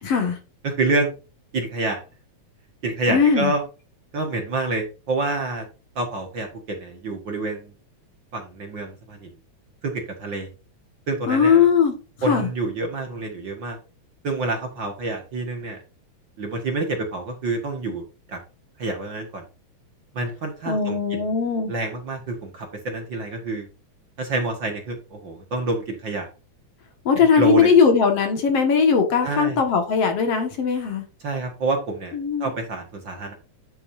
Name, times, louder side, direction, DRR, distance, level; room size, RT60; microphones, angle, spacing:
voice 1, 0.0-0.4 3.1-3.5 11.3-11.9 12.3-12.5 20.7-21.7 27.1-31.0 32.1-32.5, left 6 dB, 55° left, 2.5 m, -19 dB
voice 2, 0.6-1.1 1.5-2.0 2.8-3.6 4.1-5.7 6.0-7.7 8.3-9.3 9.8-10.5 11.1-11.7 12.2-13.8 14.2-15.8 16.4-18.4 18.8-19.4 20.1-21.2 21.7-23.7 24.2-26.3 27.2-27.7 29.2-29.6 31.2-33.3, right 2 dB, 45° right, 1.9 m, -27 dB
9.3 x 7.8 x 2.6 m
omnidirectional pair, 3.4 m